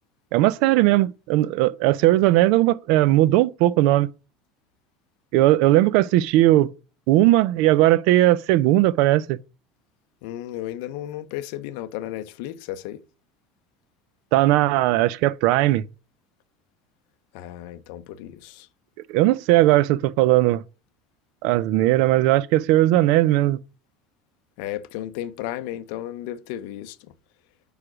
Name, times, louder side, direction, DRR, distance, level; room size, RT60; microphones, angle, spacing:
voice 1, 0.3-4.1 5.3-6.7 7.1-9.4 14.3-15.8 19.1-20.6 21.4-23.6, right 16 dB, 55° right, 0.3 m, -18 dB
voice 2, 10.2-13.0 17.3-18.7 24.6-27.0, left 13 dB, 60° left, 0.6 m, -34 dB
4.9 x 4.8 x 5.9 m
cardioid pair, 175°, 0 cm